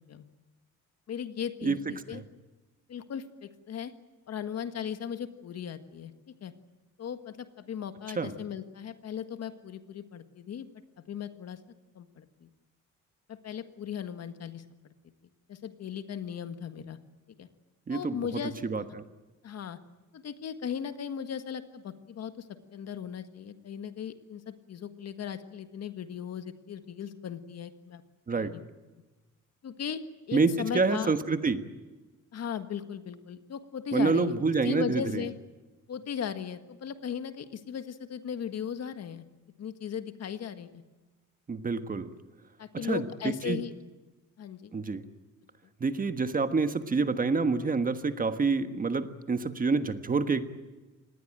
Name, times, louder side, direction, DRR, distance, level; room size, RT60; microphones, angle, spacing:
voice 1, 1.1-2.2 2.9-3.9 4.3-6.1 6.4-6.5 7.0-10.7 11.1-11.6 11.9-12.5 13.3-14.6 15.5-17.0 17.4-17.5 17.9-18.5 19.4-19.8 20.1-22.5 22.7-28.0 28.3-28.6 29.6-31.2 32.3-34.4 34.6-35.3 35.9-39.2 39.6-40.8 42.6-43.7 44.4-44.7, left 8 dB, 55° left, 10 dB, 1.7 m, -37 dB
voice 2, 17.9-18.2 18.6-18.8 28.3-28.5 30.3-31.6 33.9-35.2 41.5-42.1 42.7-43.6 44.7-45.0 45.8-50.4, right 4 dB, 30° right, 9 dB, 1.4 m, -27 dB
26.5 x 19.5 x 9.0 m, 1.2 s
cardioid pair, 145°, 30 cm